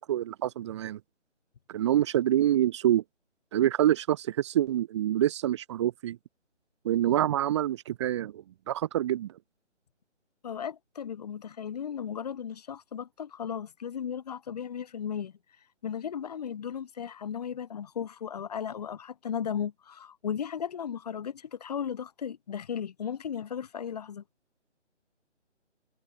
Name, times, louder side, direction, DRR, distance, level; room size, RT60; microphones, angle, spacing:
voice 1, 0.1-1.0 1.7-3.0 3.5-6.2 6.8-9.3, right 12 dB, 25° right, 3.2 m, -26 dB
voice 2, 10.4-15.3 15.8-24.2, left 8 dB, 35° left, 3.0 m, -35 dB
figure-of-eight pair, 150°, 36 cm